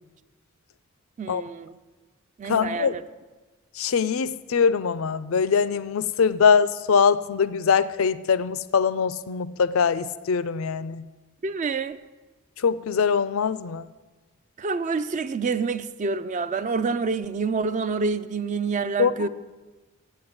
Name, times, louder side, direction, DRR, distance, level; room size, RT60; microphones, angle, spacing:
voice 1, 1.2-1.8 2.4-3.1 11.4-12.0 14.6-19.3, right 4 dB, 35° right, 13 dB, 0.3 m, -27 dB
voice 2, 2.5-2.9 3.8-11.0 12.6-13.8 19.0-19.3, left 6 dB, 75° left, 16 dB, 0.4 m, -22 dB
8.3 x 7.8 x 8.8 m, 1.2 s
head